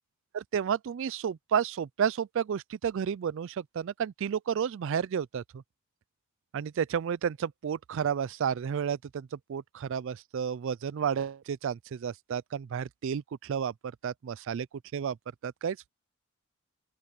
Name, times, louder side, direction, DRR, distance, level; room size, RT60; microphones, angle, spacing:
voice 1, 0.3-5.6 6.5-13.7 14.0-14.7 14.9-15.2 15.4-15.9, right 7 dB, 60° right, 0.3 m, -31 dB
open air
head